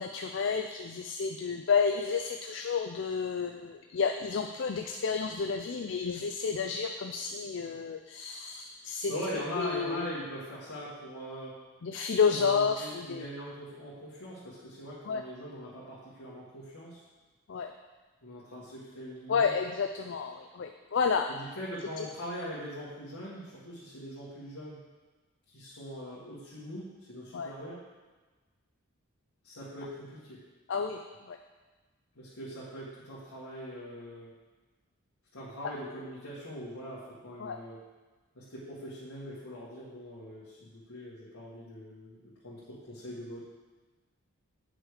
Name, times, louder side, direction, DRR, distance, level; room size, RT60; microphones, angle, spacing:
voice 1, 0.0-9.1 9.6-10.1 11.8-13.3 15.0-15.2 17.5-17.7 19.3-21.3 22.0-22.1 27.3-27.5 30.7-31.0 31.3-31.4 37.4-37.6, left 5 dB, 55° left, 4 dB, 0.4 m, -30 dB
voice 2, 9.1-11.6 12.3-17.0 18.2-19.5 21.3-24.8 25.5-27.8 29.4-30.4 32.2-34.3 35.3-37.8 38.4-43.4, equal, 80° left, -9 dB, 1.9 m, -41 dB
8.1 x 6.1 x 5.0 m, 1.3 s
head